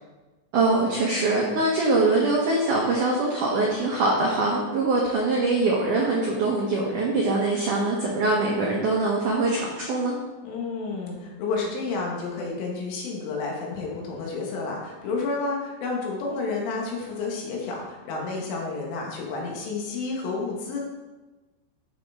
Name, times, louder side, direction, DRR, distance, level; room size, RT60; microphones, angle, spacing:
voice 1, 0.5-10.1, right 2 dB, 85° right, -2 dB, 1.8 m, -23 dB
voice 2, 10.4-20.8, left 3 dB, 85° left, -2 dB, 4.3 m, -30 dB
12.0 x 6.9 x 3.7 m, 1.2 s
omnidirectional pair, 5.5 m